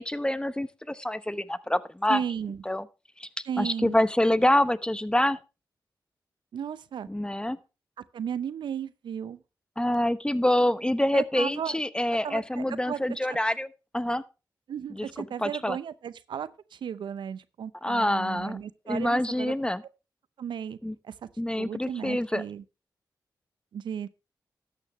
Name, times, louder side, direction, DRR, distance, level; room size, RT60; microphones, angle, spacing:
voice 1, 0.0-2.2 2.7-2.8 3.2-3.3 3.6-5.4 7.1-7.6 9.8-13.7 13.9-14.2 14.9-15.1 15.4-15.8 17.8-18.6 18.9-19.8 20.8-20.9 21.4-22.4, left 1 dB, 10° left, 1.0 m, -26 dB
voice 2, 2.1-2.6 3.5-4.0 6.5-7.1 8.1-9.4 11.1-11.8 12.2-13.0 13.3-13.4 14.7-19.5 20.4-20.8 21.0-21.1 21.6-22.6 23.7-24.1, right 8 dB, 90° right, 0.6 m, -35 dB
13.0 x 9.3 x 3.1 m
cardioid pair, 50°, 8 cm